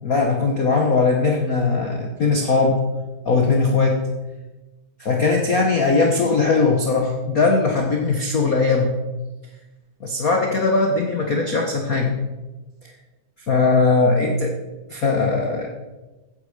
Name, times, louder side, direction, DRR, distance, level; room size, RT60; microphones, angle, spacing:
voice 1, 0.0-2.8 3.2-4.0 5.0-9.0 10.0-12.2 12.8-12.9 13.5-14.6 14.9-15.7, left 3 dB, 55° left, 2 dB, 1.0 m, -19 dB
15.0 x 10.0 x 5.0 m, 1.1 s
omnidirectional pair, 3.7 m